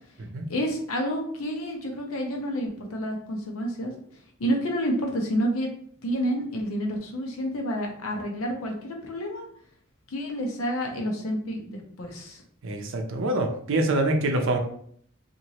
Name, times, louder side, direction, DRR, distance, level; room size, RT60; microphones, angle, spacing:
voice 1, 0.5-3.9 4.4-5.7 6.0-9.4 10.1-12.4, equal, 85° left, 1 dB, 0.7 m, -29 dB
voice 2, 12.6-14.6, right 2 dB, 65° right, 4 dB, 0.5 m, -25 dB
2.9 x 2.5 x 2.8 m, 0.62 s
head